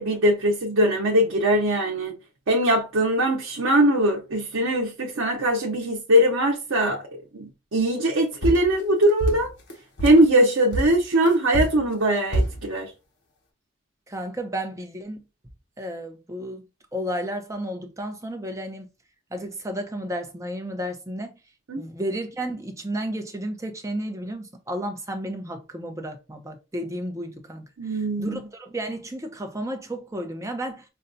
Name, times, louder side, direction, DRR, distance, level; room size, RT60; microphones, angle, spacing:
voice 1, 0.0-2.2 2.5-7.1 7.3-9.5 10.0-12.9 21.7-21.8 27.8-28.4, right 1 dB, 85° right, 0.7 m, -21 dB
sound 1, 8.4-10.3 10.7-12.6, right 1 dB, 55° left, 1.0 m, -26 dB
voice 2, 14.1-15.2 15.8-16.6 16.9-18.9 19.3-21.4 21.8-27.6 27.9-30.8, right 1 dB, 15° right, 0.6 m, -32 dB
5.5 x 2.2 x 2.6 m
head